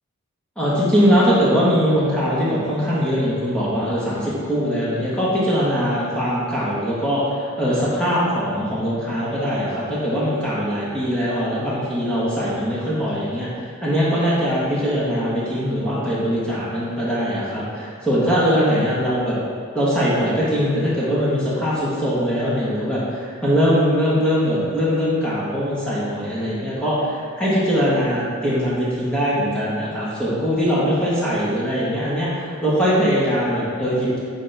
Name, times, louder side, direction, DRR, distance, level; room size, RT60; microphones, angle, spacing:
voice 1, 0.6-13.5 13.8-19.4 19.7-34.2, equal, 5° left, -9 dB, 1.4 m, -21 dB
9.8 x 4.2 x 3.4 m, 2.1 s
head